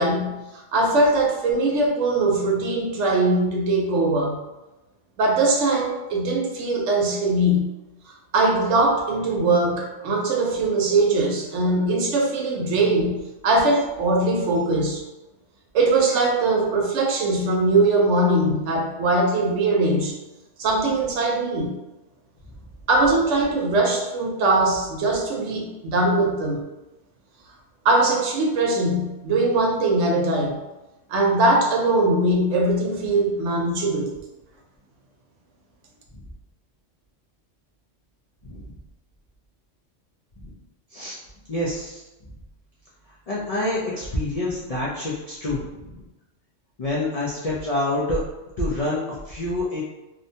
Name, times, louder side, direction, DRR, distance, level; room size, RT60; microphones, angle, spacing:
voice 1, 0.0-4.4 5.2-7.7 8.3-13.2 13.4-15.0 15.7-20.2 20.6-21.7 22.9-26.6 27.8-30.6 31.1-34.1, right 2 dB, 80° right, 0 dB, 0.9 m, -21 dB
voice 2, 41.5-42.0 43.3-46.0 46.8-48.2 48.6-49.8, left 1 dB, 65° left, -6 dB, 0.3 m, -27 dB
2.6 x 2.1 x 2.6 m, 1.0 s
omnidirectional pair, 1.3 m